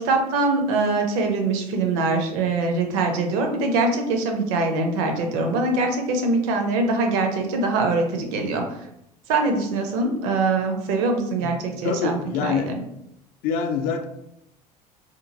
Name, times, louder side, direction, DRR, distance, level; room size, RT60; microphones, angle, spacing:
voice 1, 0.0-8.6 9.3-12.7, right 3 dB, 55° right, 4 dB, 0.6 m, -23 dB
voice 2, 11.8-12.7 13.4-14.0, left 6 dB, 50° left, 7 dB, 0.4 m, -25 dB
2.9 x 2.5 x 2.5 m, 0.79 s
figure-of-eight pair, 70°, 20 cm